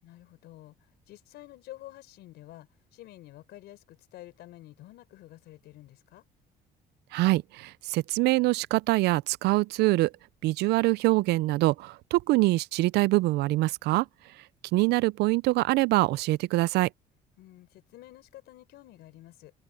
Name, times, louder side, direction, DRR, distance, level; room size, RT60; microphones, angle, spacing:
voice 1, 0.0-6.3 17.4-19.5, left 15 dB, 80° left, 4.3 m, -49 dB
voice 2, 7.1-10.1 10.4-14.1 14.7-16.9, right 19 dB, 80° right, 0.4 m, -24 dB
cardioid pair, 110°, 17 cm